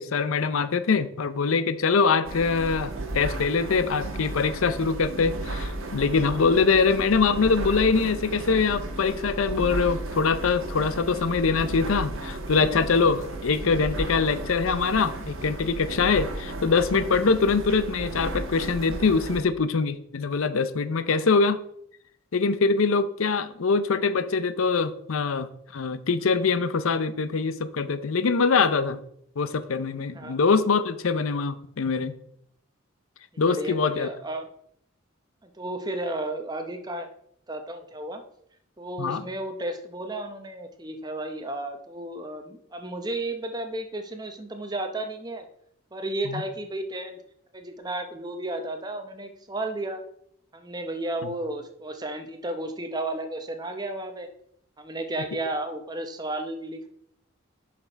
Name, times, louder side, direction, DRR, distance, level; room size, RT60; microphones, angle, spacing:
voice 1, 0.0-21.6 22.3-29.0 29.4-32.1 33.4-34.1 39.0-39.2 46.3-46.4, left 4 dB, 85° left, 13 dB, 0.6 m, -23 dB
sound 1, 2.2-19.4, right 2 dB, 80° right, 1.3 m, -34 dB
voice 2, 33.3-34.5 35.4-37.1 37.5-38.2 38.8-45.4 45.9-47.2 47.5-50.0 50.5-54.3 54.8-56.9, right 2 dB, 20° right, 6 dB, 0.7 m, -33 dB
6.5 x 6.0 x 4.5 m, 0.69 s
head